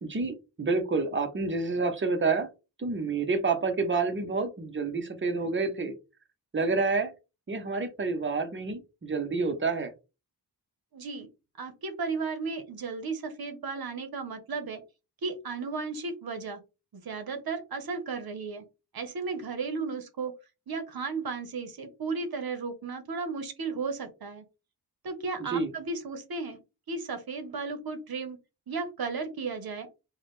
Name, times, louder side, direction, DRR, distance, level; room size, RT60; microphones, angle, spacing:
voice 1, 0.0-2.5 2.8-5.9 6.5-7.1 7.5-9.9 25.4-25.7, right 4 dB, 30° right, 7 dB, 0.7 m, -28 dB
voice 2, 10.9-11.3 11.6-14.8 15.2-16.6 16.9-18.6 18.9-20.3 20.7-24.4 25.0-26.6 26.9-28.4 28.7-29.9, right 4 dB, 60° right, 8 dB, 0.9 m, -34 dB
4.6 x 2.2 x 3.1 m, 0.28 s
wide cardioid pair, 140°, 42 cm